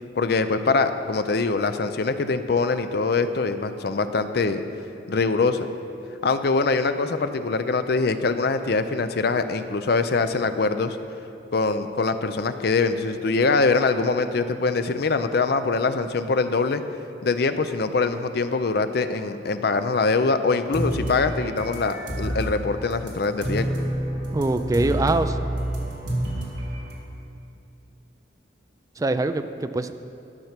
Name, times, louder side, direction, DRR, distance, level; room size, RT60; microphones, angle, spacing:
voice 1, 0.2-4.6 5.1-5.7 6.2-11.0 11.5-16.8 17.2-23.7, left 4 dB, 60° left, 9 dB, 0.5 m, -23 dB
sound 1, 20.7-22.6 22.9-26.9, right 1 dB, 70° right, 1.9 m, -28 dB
voice 2, 24.3-25.4 29.0-29.9, right 2 dB, 20° right, 10 dB, 0.3 m, -23 dB
12.5 x 5.9 x 5.9 m, 2.7 s
head